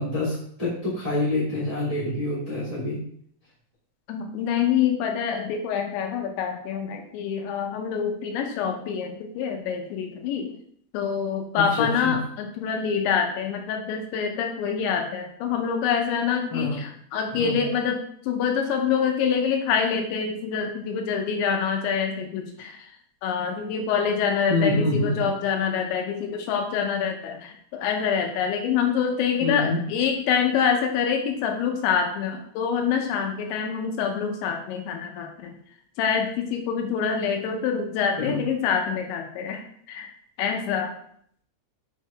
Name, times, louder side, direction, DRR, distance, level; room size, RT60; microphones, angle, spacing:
voice 1, 0.0-3.0 11.7-12.2 16.5-16.8 17.3-17.7 24.5-25.2 29.4-29.8 38.2-38.4, left 2 dB, 10° right, -9 dB, 1.3 m, -26 dB
voice 2, 4.1-10.5 10.9-22.9 23.2-35.5 36.0-40.1 40.4-40.9, left 7 dB, 85° left, 3 dB, 3.2 m, -26 dB
6.9 x 4.6 x 3.4 m, 0.64 s
omnidirectional pair, 5.2 m